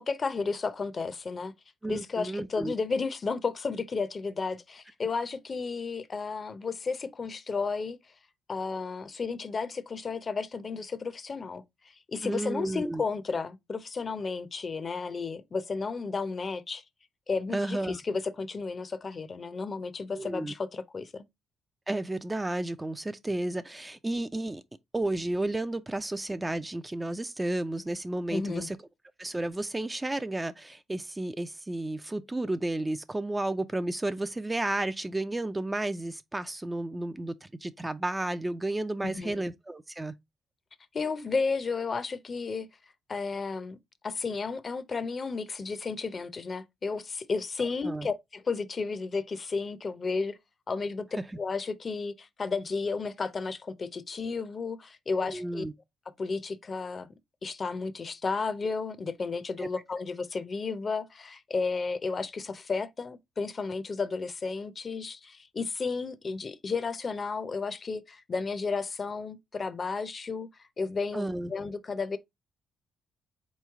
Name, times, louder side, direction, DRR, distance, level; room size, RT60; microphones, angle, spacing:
voice 1, 0.0-1.5 1.8-8.0 8.5-16.8 17.3-21.3 28.3-28.7 39.0-39.5 40.9-42.7 43.1-43.8 44.0-50.4 50.7-51.1 51.4-55.6 56.2-57.1 57.4-70.5 70.8-72.2, left 4 dB, 40° left, 0.6 m, -33 dB
voice 2, 1.8-2.7 12.2-13.0 17.5-18.0 20.1-20.5 21.9-24.6 24.9-28.8 29.2-40.1 47.8-48.1 51.1-51.2 55.3-55.7 59.6-59.7 71.1-71.5, right 2 dB, 15° right, 0.3 m, -32 dB
4.0 x 3.1 x 3.4 m
cardioid pair, 90°, 0 cm